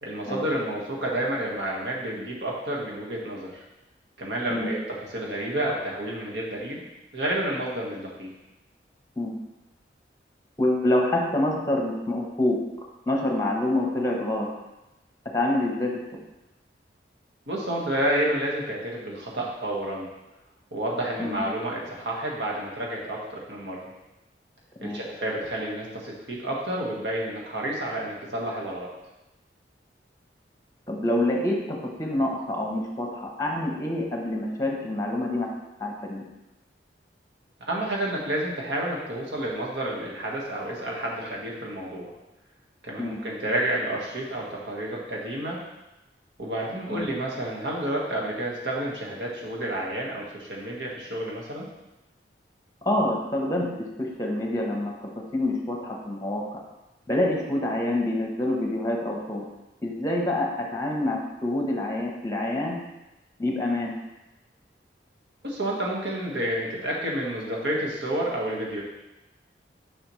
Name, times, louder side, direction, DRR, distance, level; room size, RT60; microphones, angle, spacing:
voice 1, 0.0-3.6 4.2-6.8 7.1-8.3 17.5-20.1 20.7-23.9 24.8-28.9 37.7-42.1 42.8-45.6 46.4-51.7 65.4-68.8, right 1 dB, 80° right, -3 dB, 1.5 m, -30 dB
voice 2, 10.6-12.6 13.1-14.5 15.3-16.0 21.2-21.4 24.8-25.0 30.9-35.5 35.8-36.2 43.0-43.2 46.9-47.1 52.8-54.9 55.3-56.6 57.1-59.5 59.8-62.8 63.4-63.9, left 1 dB, 20° left, 0 dB, 1.0 m, -26 dB
7.1 x 5.4 x 3.2 m, 0.98 s
head